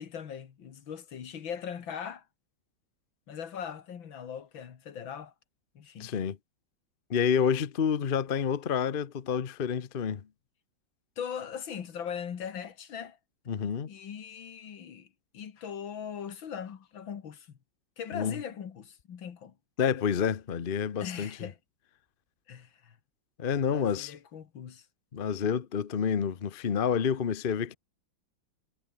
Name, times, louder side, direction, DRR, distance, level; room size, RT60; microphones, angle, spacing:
voice 1, 0.0-2.2 3.3-5.3 5.8-6.1 11.2-13.2 13.9-15.1 15.3-17.5 18.0-19.5 21.0-21.6 22.5-23.0 23.7-24.9, left 8 dB, 80° left, 2.5 m, -40 dB
voice 2, 6.0-6.4 7.1-10.2 13.5-13.9 18.1-18.3 19.8-21.3 23.4-24.1 25.1-27.7, left 7 dB, 40° left, 0.8 m, -28 dB
omnidirectional pair, 2.1 m